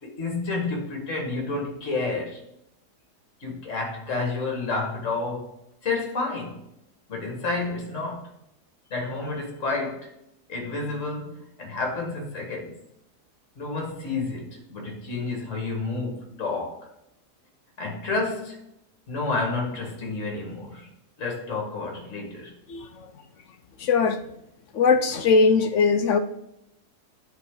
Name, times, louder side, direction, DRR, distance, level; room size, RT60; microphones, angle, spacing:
voice 1, 0.0-2.4 3.4-5.5 5.8-6.6 7.1-8.3 8.9-10.1 10.5-12.7 13.6-16.8 17.8-18.6 19.1-20.9 21.2-22.5, left 3 dB, 50° left, 2.1 m, -30 dB
voice 2, 22.7-23.1 23.8-24.2 24.7-26.2, left 4 dB, 65° left, 0.8 m, -20 dB
10.0 x 4.1 x 3.7 m
omnidirectional pair, 1.7 m